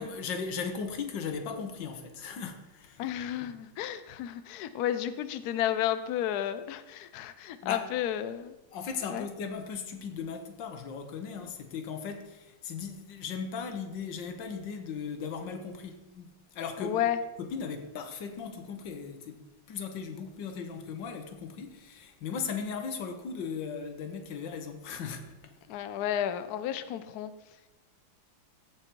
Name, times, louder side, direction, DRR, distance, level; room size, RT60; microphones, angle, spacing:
voice 1, 0.0-3.0 3.3-3.5 7.6-7.9 8.7-17.0 17.4-25.5, left 6 dB, 60° left, 1.6 m, -37 dB
voice 2, 3.0-8.5 9.1-9.3 16.8-17.2 25.7-27.3, left 11 dB, 90° left, 0.8 m, -32 dB
15.0 x 5.2 x 4.6 m
omnidirectional pair, 2.4 m